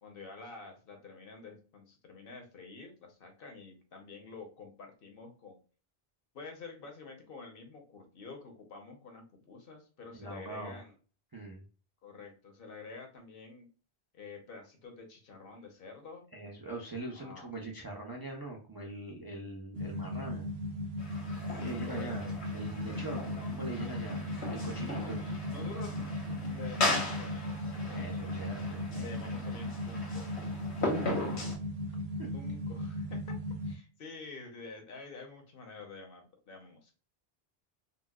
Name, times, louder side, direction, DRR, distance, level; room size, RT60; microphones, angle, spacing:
voice 1, 0.0-5.6 6.3-10.9 12.0-13.7 14.1-16.2 17.1-17.5 21.6-22.4 24.7-26.1 26.3-27.6 27.8-28.2 28.9-30.3 32.3-33.3 33.6-36.9, left 4 dB, 60° left, 3 dB, 0.9 m, -48 dB
voice 2, 10.1-10.8 11.3-11.7 16.3-20.5 21.6-22.3 22.5-24.2 24.5-25.2 27.9-29.1 30.8-31.5 32.2-32.3, right 2 dB, 30° right, -2 dB, 0.5 m, -42 dB
sound 1, 19.7-33.8, left 1 dB, 75° right, 0.9 m, -37 dB
sound 2, 21.0-31.6, left 2 dB, 85° left, 1.4 m, -38 dB
4.0 x 2.2 x 2.2 m, 0.37 s
omnidirectional pair, 1.1 m